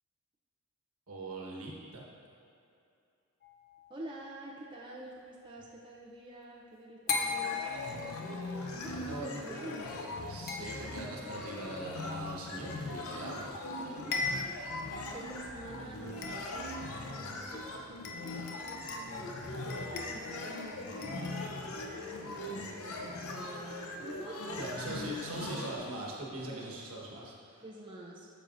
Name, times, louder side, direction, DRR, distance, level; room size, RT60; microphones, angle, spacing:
voice 1, 1.1-2.0 8.2-9.4 10.3-13.6 22.2-22.5 24.6-27.6, right 2 dB, 80° right, -3 dB, 1.3 m, -42 dB
sound 1, 3.4-4.0 7.1-8.4 10.5-11.3 13.4-13.5 13.8-13.9 14.1-14.7 15.3-15.4 16.2-16.7 17.6-17.7 18.0-19.2 19.7-20.7 21.0-21.5, left 4 dB, 45° left, 0.6 m, -38 dB
voice 2, 3.9-10.0 13.7-14.3 14.5-14.8 15.1-24.7 25.5-25.9 26.5-26.6 27.6-28.3, right 1 dB, 20° right, -4 dB, 0.5 m, -48 dB
sound 2, 7.1-25.7, left 2 dB, 80° left, 0.7 m, -40 dB
sound 3, 13.8-17.1, equal, 15° left, 1.4 m, -58 dB
8.9 x 6.8 x 2.5 m, 2.6 s
head